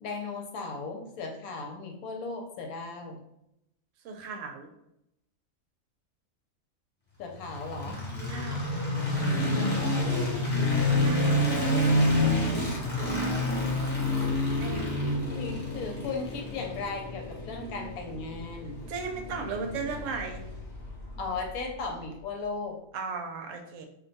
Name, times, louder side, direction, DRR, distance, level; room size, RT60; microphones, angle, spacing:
voice 1, 0.0-3.2 7.2-8.0 9.5-10.6 15.3-18.8 21.2-22.8, left 4 dB, 80° left, 2 dB, 1.1 m, -37 dB
voice 2, 4.0-4.7 8.2-8.7 10.9-11.8 14.6-14.9 18.9-20.4 22.9-23.9, right 5 dB, 70° right, 4 dB, 0.9 m, -36 dB
sound 1, 7.4-21.5, left 1 dB, 10° left, 0.7 m, -28 dB
2.6 x 2.2 x 3.9 m, 0.81 s
omnidirectional pair, 1.5 m